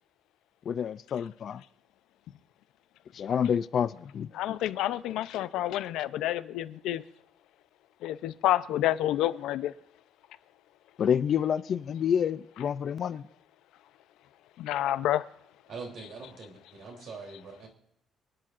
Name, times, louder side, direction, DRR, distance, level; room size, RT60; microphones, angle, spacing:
voice 1, 0.7-1.6 3.1-4.6 11.0-13.2, left 8 dB, 40° left, 0.4 m, -28 dB
voice 2, 4.3-7.0 8.0-9.7 14.6-15.2, left 13 dB, 90° left, 0.6 m, -29 dB
voice 3, 15.7-17.7, right 4 dB, 50° right, 3.3 m, -43 dB
26.0 x 10.5 x 2.5 m
cardioid pair, 175°, 0 cm